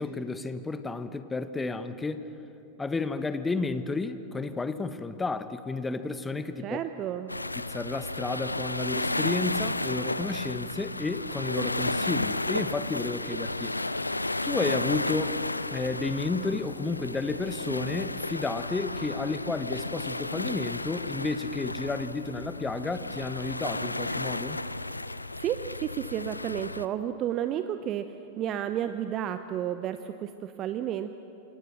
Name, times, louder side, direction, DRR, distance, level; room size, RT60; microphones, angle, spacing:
voice 1, 0.0-2.3 2.8-6.8 7.5-13.7 14.4-15.4 15.7-24.6, left 3 dB, 10° left, 11 dB, 1.3 m, -32 dB
voice 2, 6.6-7.3 25.4-31.1, right 10 dB, 35° right, 10 dB, 0.8 m, -32 dB
sound 1, 7.3-26.9, left 2 dB, 85° left, 0.6 m, -33 dB
28.0 x 26.0 x 6.5 m, 3.0 s
figure-of-eight pair, 90°, 0 cm